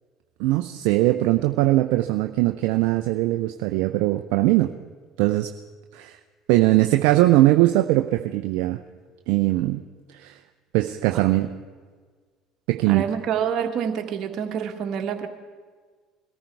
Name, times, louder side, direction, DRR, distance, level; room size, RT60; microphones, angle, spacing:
voice 1, 0.4-4.7 5.2-5.5 5.9-6.2 6.5-8.8 9.3-9.8 10.1-10.4 10.7-11.5 12.7-13.1, right 17 dB, 75° right, 6 dB, 0.6 m, -20 dB
voice 2, 12.8-15.3, right 8 dB, 55° right, 5 dB, 1.8 m, -27 dB
22.0 x 14.0 x 4.7 m, 1.5 s
hypercardioid pair, 70°, 0 cm